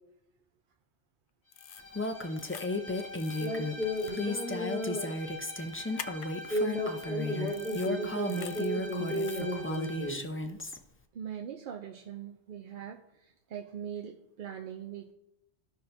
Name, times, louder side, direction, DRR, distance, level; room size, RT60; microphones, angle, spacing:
sound 1, 1.5-1.9 2.4-2.7 3.2-3.5 4.0-4.1 6.0-6.3 7.0-7.1 7.5-7.9 8.3-8.7 9.1-9.4, left 8 dB, 60° left, 0.6 m, -45 dB
Bowed string instrument, 1.6-10.2, left 2 dB, 85° left, 1.9 m, -46 dB
Female speech woman speaking, 1.9-10.8, left 2 dB, 20° left, 0.4 m, -34 dB
voice 1, 3.3-5.1 6.2-10.2, equal, 40° right, -4 dB, 3.1 m, -33 dB
voice 2, 11.1-15.1, right 8 dB, 60° right, 5 dB, 0.7 m, -42 dB
15.0 x 5.6 x 2.6 m, 0.89 s
omnidirectional pair, 1.1 m